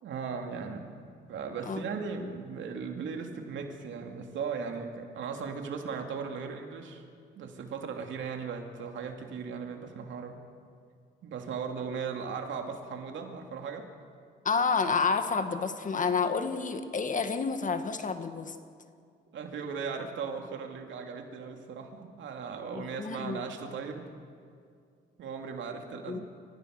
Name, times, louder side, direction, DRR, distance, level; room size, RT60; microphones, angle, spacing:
voice 1, 0.0-7.0 7.3-10.4 11.2-13.9 19.3-24.1 25.2-26.2, right 5 dB, 75° right, 3 dB, 2.7 m, -37 dB
voice 2, 14.4-18.5 22.7-23.4 26.1-26.2, left 5 dB, 40° left, 8 dB, 1.8 m, -29 dB
28.5 x 14.5 x 6.6 m, 2.3 s
cardioid pair, 90°, 20 cm